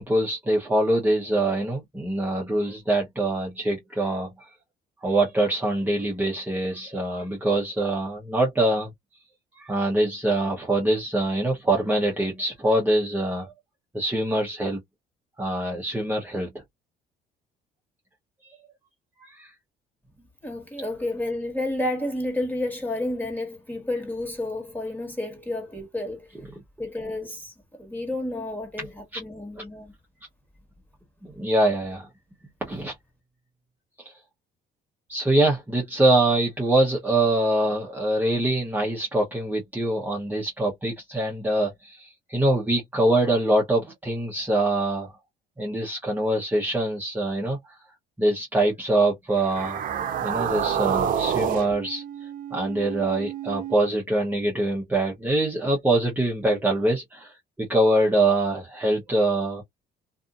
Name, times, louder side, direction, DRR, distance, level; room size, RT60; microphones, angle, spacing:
voice 1, 0.0-4.5 5.0-8.9 9.5-13.5 13.9-14.8 15.4-16.5 19.2-19.5 28.8-28.9 31.2-32.1 32.6-32.9 34.0-34.1 35.1-45.1 45.6-47.8 48.2-49.9 50.2-59.6, right 1 dB, 10° right, 0.9 m, -24 dB
voice 2, 20.4-26.3 26.8-27.5 27.8-29.9, left 1 dB, 10° left, 1.7 m, -30 dB
sound 1, 49.4-53.8, right 8 dB, 55° right, 0.7 m, -28 dB
2.6 x 2.5 x 2.5 m
cardioid pair, 110°, 17 cm